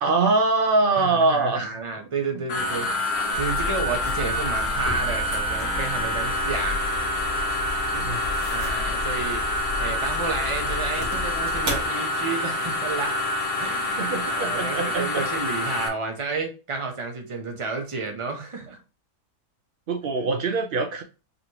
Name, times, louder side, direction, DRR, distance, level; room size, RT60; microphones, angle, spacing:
voice 1, 0.0-1.7 7.9-8.2 14.0-15.2 19.9-21.0, right 3 dB, 85° right, 5 dB, 0.4 m, -23 dB
voice 2, 1.0-2.9 3.3-6.8 8.5-9.4 9.8-13.2 13.6-18.8, right 4 dB, 30° right, 3 dB, 0.7 m, -31 dB
sound 1, 2.5-15.9, left 1 dB, 80° left, 1.4 m, -27 dB
sound 2, 3.3-11.9, left 2 dB, 60° right, 2.1 m, -34 dB
5.2 x 3.1 x 2.9 m, 0.32 s
omnidirectional pair, 1.6 m